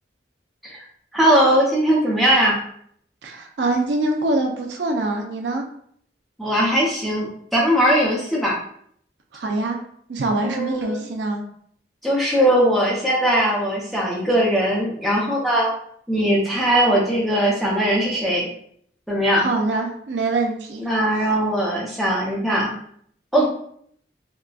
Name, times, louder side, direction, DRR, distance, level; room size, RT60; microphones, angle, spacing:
voice 1, 1.1-2.6 6.4-8.5 10.4-11.0 12.0-15.7 16.1-18.5 19.1-19.5 20.8-22.7 23.3-23.5, equal, ahead, -5 dB, 0.7 m, -20 dB
voice 2, 3.2-5.6 9.3-9.8 10.1-11.4 19.4-20.9 21.1-21.3 23.4-23.5, right 2 dB, 80° right, 1 dB, 0.5 m, -24 dB
3.7 x 2.2 x 2.4 m, 0.64 s
head